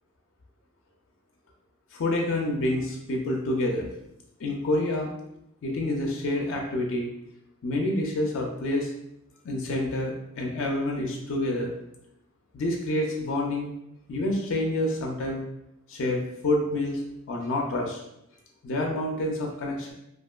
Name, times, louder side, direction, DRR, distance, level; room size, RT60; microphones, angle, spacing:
voice 1, 1.9-3.9 4.4-5.1 5.6-7.1 7.6-8.9 9.4-11.7 12.5-13.7 14.1-15.4 15.9-17.0 17.3-18.0 18.6-19.9, left 1 dB, 60° left, 0 dB, 0.4 m, -28 dB
2.8 x 2.4 x 2.3 m, 0.82 s
head